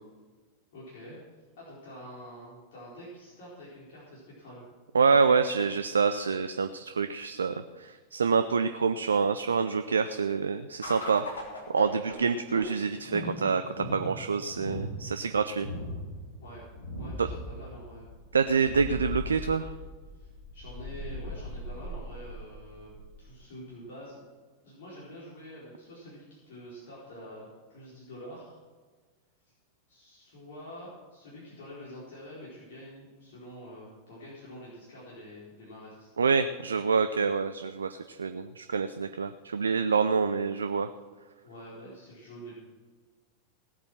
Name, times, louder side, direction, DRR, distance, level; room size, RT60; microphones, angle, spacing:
voice 1, 0.7-1.2 1.6-4.6 16.4-16.7 17.0-18.1 18.6-19.1 20.1-24.2 24.6-28.6 29.5-29.6 29.9-36.2 41.4-42.7, equal, 55° left, -6 dB, 4.3 m, -47 dB
voice 2, 4.9-11.2 11.7-15.7 17.2-17.3 18.3-19.7 36.2-40.9, right 5 dB, 70° right, 10 dB, 0.5 m, -27 dB
sound 1, 10.8-23.4, left 1 dB, 75° left, 3.1 m, -39 dB
18.0 x 8.4 x 6.2 m, 1.4 s
figure-of-eight pair, 90°, 0 cm